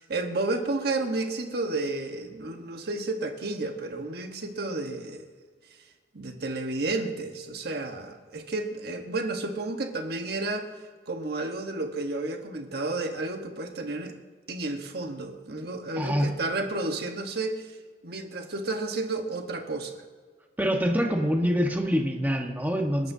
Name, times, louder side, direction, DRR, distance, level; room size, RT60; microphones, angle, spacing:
voice 1, 0.1-5.3 6.1-10.7 11.1-14.1 14.5-17.7 18.0-20.0, right 2 dB, 65° right, 4 dB, 1.4 m, -31 dB
voice 2, 16.0-16.3 20.6-23.1, equal, 10° right, 2 dB, 1.4 m, -25 dB
28.5 x 12.0 x 2.8 m, 1.5 s
head